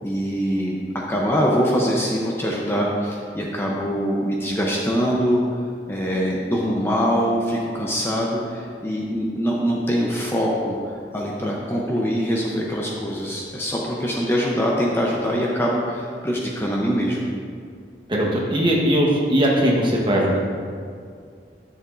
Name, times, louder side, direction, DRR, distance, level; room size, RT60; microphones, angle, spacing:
voice 1, 0.0-5.4 5.9-17.2, equal, 15° left, -3 dB, 0.6 m, -23 dB
voice 2, 18.1-20.4, equal, 30° right, -2 dB, 1.1 m, -19 dB
11.0 x 6.8 x 2.5 m, 2.2 s
head